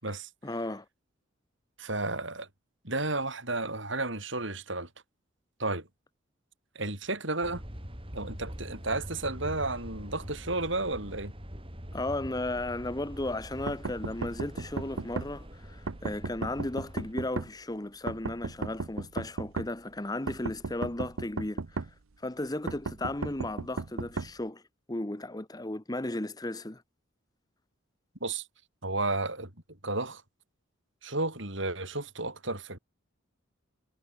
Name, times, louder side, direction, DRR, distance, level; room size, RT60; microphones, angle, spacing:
voice 1, 0.4-0.8 11.9-21.9 22.2-24.6 24.9-26.8, left 1 dB, 20° left, 1.0 m, -35 dB
voice 2, 1.8-2.5 2.8-4.9 5.6-5.9 6.8-7.6 8.1-11.3 28.2-28.4 28.8-29.5 29.8-30.2 31.0-32.8, right 2 dB, 65° right, 7.1 m, -32 dB
sound 1, 7.4-17.1, equal, 25° right, 5.4 m, -44 dB
sound 2, 13.7-15.3 15.9-17.5 18.1-19.7 20.3-21.9 22.7-24.3, right 3 dB, 90° right, 0.8 m, -34 dB
head